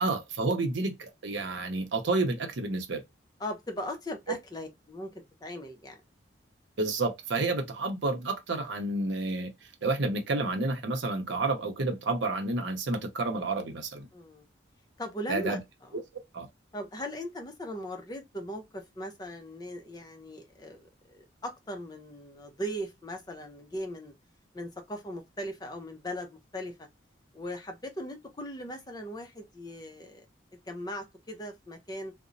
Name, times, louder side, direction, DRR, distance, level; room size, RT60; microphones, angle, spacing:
voice 1, 0.0-3.0 6.8-9.5 9.8-14.1 15.3-15.6 15.9-16.0 16.3-16.5, right 2 dB, 70° right, 0.7 m, -30 dB
voice 2, 3.4-5.1 5.4-6.0 14.1-14.5 15.0-15.6 16.7-20.9 21.1-24.1 24.5-26.7 27.3-30.2 30.7-32.1, equal, 20° left, 0.5 m, -38 dB
2.9 x 2.1 x 2.5 m
head